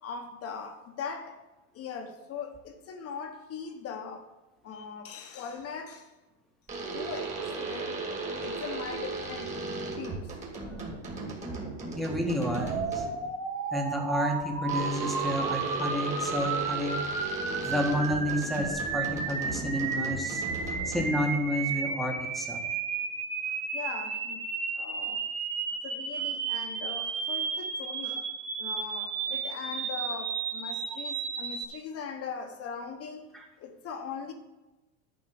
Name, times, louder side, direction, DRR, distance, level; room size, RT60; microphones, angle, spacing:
voice 1, 0.0-1.4 1.7-4.3 4.6-6.1 6.8-8.0 8.4-9.5 10.0-10.2 23.7-24.4 24.7-25.2 25.8-28.2 28.6-33.3 33.6-34.3, left 6 dB, 30° left, 1.5 m, -40 dB
sound 1, 6.7-13.3 14.7-21.3, right 3 dB, 15° right, 2.3 m, -36 dB
voice 2, 12.0-13.1 13.7-17.0 17.6-20.4 20.9-22.7 33.3-33.5, equal, ahead, 1.6 m, -30 dB
sound 2, 12.6-31.6, right 5 dB, 35° right, 2.1 m, -33 dB
11.0 x 5.3 x 6.9 m
supercardioid pair, 140°, 44 cm